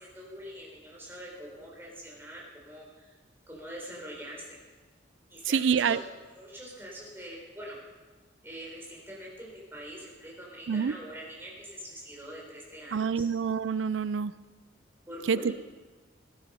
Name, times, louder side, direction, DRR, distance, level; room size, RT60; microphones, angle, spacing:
voice 1, 0.0-3.1 3.5-4.6 5.3-6.0 6.3-7.8 8.4-13.3 15.1-15.5, equal, 10° right, -4 dB, 4.0 m, -44 dB
voice 2, 5.5-6.0 10.7-10.9 12.9-14.3 15.3-15.5, right 6 dB, 80° right, 17 dB, 0.4 m, -26 dB
16.5 x 11.5 x 5.5 m, 1.3 s
head